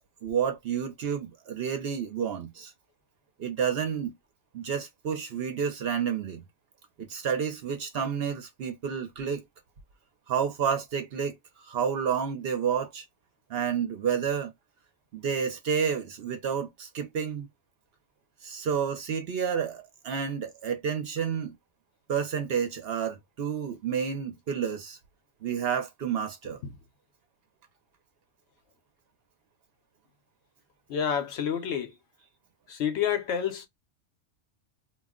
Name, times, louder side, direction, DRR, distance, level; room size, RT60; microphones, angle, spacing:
voice 1, 0.2-2.7 3.4-4.1 4.5-6.4 7.0-9.4 10.3-11.4 11.6-13.0 13.5-14.5 15.1-17.5 18.4-21.6 22.1-25.0 25.4-26.6, right 7 dB, 60° right, 0.7 m, -30 dB
voice 2, 30.9-31.9 32.7-33.7, left 8 dB, 70° left, 0.9 m, -29 dB
2.3 x 2.1 x 3.5 m
omnidirectional pair, 1.3 m